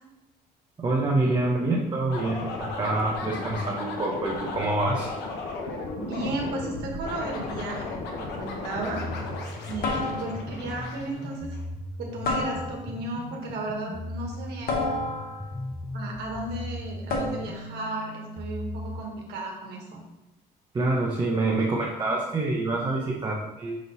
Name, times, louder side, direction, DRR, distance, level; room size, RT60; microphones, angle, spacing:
voice 1, 0.8-5.1 6.2-6.3 20.7-23.8, right 2 dB, 25° right, -2 dB, 0.9 m, -26 dB
sound 1, 2.1-11.6, left 3 dB, 80° left, 1.1 m, -35 dB
voice 2, 6.0-9.0 9.7-11.6 12.0-14.8 15.9-20.0, right 2 dB, 80° right, 0 dB, 1.4 m, -34 dB
sound 2, 8.0-8.4 9.8-10.6 12.2-13.1 14.7-15.6 17.1-17.7, left 2 dB, 60° left, 1.3 m, -30 dB
sound 3, 8.9-19.0, left 1 dB, 20° left, 0.8 m, -38 dB
6.2 x 3.7 x 4.1 m, 0.97 s
cardioid pair, 110°, 17 cm